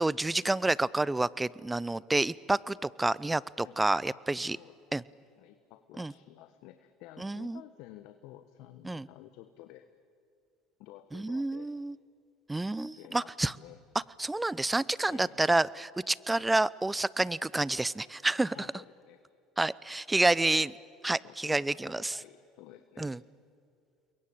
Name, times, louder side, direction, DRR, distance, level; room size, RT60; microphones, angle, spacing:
voice 1, 0.0-4.6 4.9-5.0 6.0-6.1 7.2-7.6 8.8-9.1 11.1-12.0 12.5-13.5 14.2-18.6 19.6-20.7 21.0-22.2 23.0-23.2, right 2 dB, 10° right, 21 dB, 0.7 m, -29 dB
voice 2, 5.4-9.9 10.8-11.7 12.9-13.8 15.1-15.4 18.2-19.2 20.2-20.7 21.2-23.1, left 14 dB, 65° left, 9 dB, 1.2 m, -52 dB
28.5 x 22.5 x 8.6 m, 2.5 s
hypercardioid pair, 75°, 0 cm